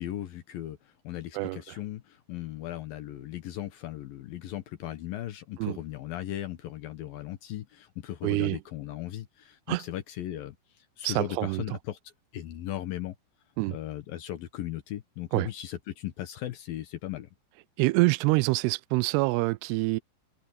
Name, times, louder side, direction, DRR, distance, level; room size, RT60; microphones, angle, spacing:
voice 1, 0.0-13.2 13.7-17.3, left 13 dB, 70° left, 2.5 m, -37 dB
voice 2, 1.3-1.8 5.6-5.8 8.2-8.6 9.7-9.8 11.0-11.6 13.6-13.8 15.3-15.5 17.8-20.0, right 23 dB, 85° right, 2.4 m, -26 dB
omnidirectional pair, 5.1 m